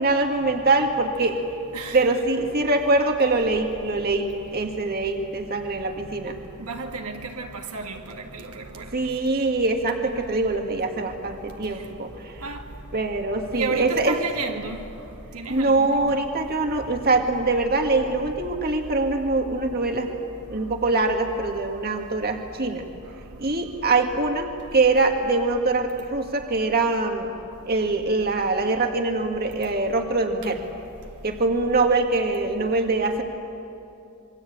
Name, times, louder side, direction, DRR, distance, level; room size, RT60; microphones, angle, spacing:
voice 1, 0.0-1.4 1.9-6.4 8.9-12.4 12.9-14.2 15.5-20.1 20.5-22.9 23.4-27.3 27.7-30.6 31.2-33.2, right 3 dB, 45° right, 1.9 m, -23 dB
voice 2, 6.6-8.0 8.3-8.9 12.4-12.6 13.5-14.8 15.3-16.2, right 4 dB, 75° right, 2.1 m, -32 dB
27.0 x 24.0 x 8.7 m
head